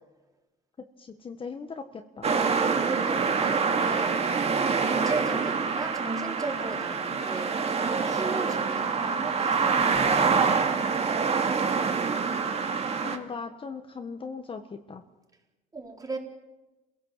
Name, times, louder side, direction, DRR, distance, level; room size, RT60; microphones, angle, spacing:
voice 1, 1.0-2.3 13.0-15.0, left 5 dB, 30° left, 6 dB, 1.5 m, -39 dB
sound 1, 2.2-13.2, right 5 dB, 40° right, 2.4 m, -26 dB
voice 2, 2.3-4.2 4.8-7.6 8.0-11.0 15.7-16.2, right 3 dB, 20° right, 2 dB, 4.3 m, -36 dB
28.5 x 16.5 x 7.6 m, 1.1 s
cardioid pair, 110°, 17 cm